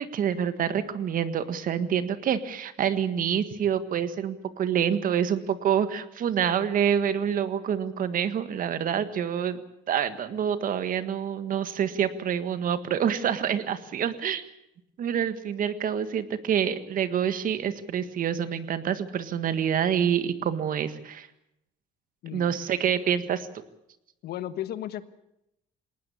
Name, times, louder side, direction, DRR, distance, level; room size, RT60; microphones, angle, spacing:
voice 1, 0.0-9.6 9.9-14.4 15.0-21.3 22.3-23.5, right 8 dB, 55° right, 12 dB, 1.7 m, -27 dB
voice 2, 24.2-25.0, left 12 dB, 70° left, 13 dB, 1.3 m, -34 dB
20.0 x 19.0 x 8.6 m, 0.82 s
cardioid pair, 110°, 17 cm